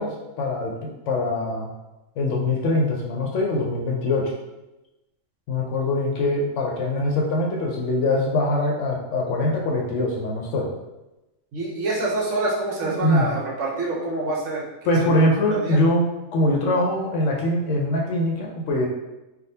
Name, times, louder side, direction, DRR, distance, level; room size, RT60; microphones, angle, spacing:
voice 1, 0.0-1.7 2.2-4.3 5.5-10.7 13.0-13.3 14.9-18.9, left 1 dB, 70° left, -1 dB, 0.9 m, -23 dB
voice 2, 11.5-15.2 15.5-15.8, right 2 dB, 65° right, -3 dB, 1.0 m, -26 dB
3.5 x 2.3 x 2.7 m, 0.99 s
omnidirectional pair, 1.4 m